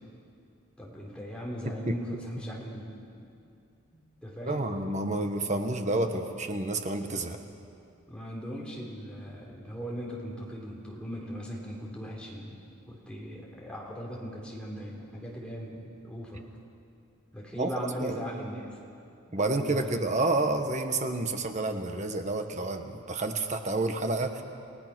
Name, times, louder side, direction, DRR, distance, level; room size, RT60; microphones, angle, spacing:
voice 1, 0.8-3.0 3.9-4.7 8.1-12.5 12.9-16.4 17.3-18.7 19.4-20.1, equal, 5° left, -3 dB, 3.9 m, -39 dB
voice 2, 4.4-7.4 17.6-17.7 18.0-18.3 19.3-24.4, right 2 dB, 35° right, 6 dB, 1.3 m, -29 dB
29.5 x 17.0 x 6.2 m, 2.6 s
head